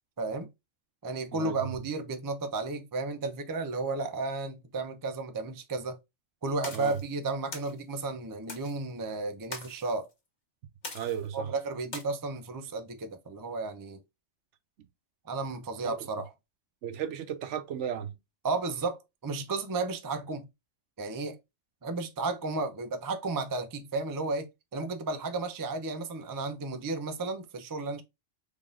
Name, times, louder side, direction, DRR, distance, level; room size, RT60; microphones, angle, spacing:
voice 1, 0.2-0.5 1.0-6.0 6.4-10.1 11.3-14.0 15.3-16.3 18.4-19.0 19.2-20.5 21.0-21.4 21.8-28.0, right 3 dB, 30° right, 0.3 m, -33 dB
voice 2, 1.3-1.7 6.7-7.0 10.9-11.5 15.8-16.1 16.8-18.2, right 9 dB, 75° right, 0.9 m, -35 dB
sound 1, 6.6-7.0 7.5-7.8 8.5-8.8 9.5-9.9 10.8-11.3 11.9-12.0, left 3 dB, 40° left, 1.1 m, -41 dB
3.8 x 3.6 x 2.4 m
omnidirectional pair, 1.3 m